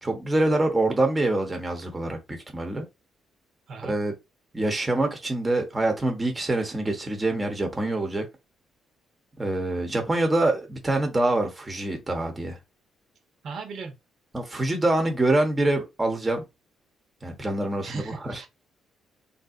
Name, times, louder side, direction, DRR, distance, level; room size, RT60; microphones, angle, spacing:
voice 1, 0.0-2.8 3.8-4.1 4.5-8.2 9.4-12.6 14.3-16.4 17.2-18.4, right 2 dB, 20° right, 0.9 m, -25 dB
voice 2, 13.4-13.9 17.8-18.5, right 4 dB, 65° right, 1.0 m, -36 dB
3.5 x 2.6 x 2.5 m
cardioid pair, 90°, 0 cm